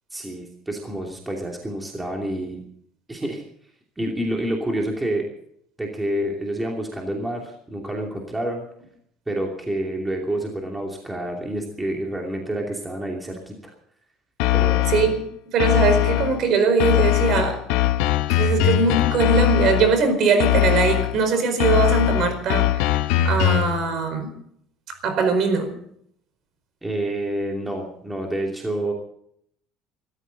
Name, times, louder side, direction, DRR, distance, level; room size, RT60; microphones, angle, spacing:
voice 1, 0.1-2.6 3.1-3.4 4.0-5.3 5.8-8.6 9.3-13.7 14.5-14.8 26.8-28.9, right 1 dB, 10° right, 0 dB, 2.8 m, -28 dB
sound 1, 14.4-15.2 15.6-16.4 16.8-20.0 20.4-21.2 21.6-23.8, left 13 dB, 85° left, 1.2 m, -21 dB
voice 2, 14.9-17.6 18.3-22.9 23.2-24.3 25.0-25.7, right 4 dB, 45° right, 9 dB, 4.6 m, -21 dB
26.0 x 14.0 x 4.0 m, 0.68 s
cardioid pair, 170°, 0 cm